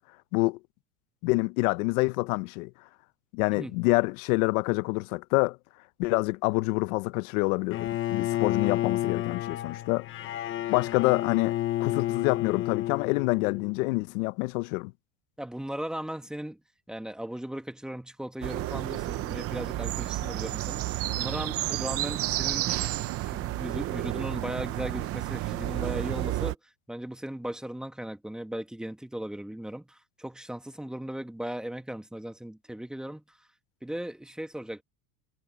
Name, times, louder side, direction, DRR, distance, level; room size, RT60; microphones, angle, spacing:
voice 1, 1.2-2.7 3.3-5.6 6.0-10.1 10.7-14.9, left 24 dB, 75° left, 0.7 m, -27 dB
Bowed string instrument, 7.7-13.8, left 14 dB, 30° left, 0.8 m, -30 dB
voice 2, 15.4-16.6 16.9-20.8 21.2-22.7 23.1-26.6 26.9-33.2 33.8-34.8, right 1 dB, ahead, 1.1 m, -37 dB
sound 1, 18.4-26.5, right 16 dB, 35° right, 0.7 m, -31 dB
cardioid pair, 165°, 43 cm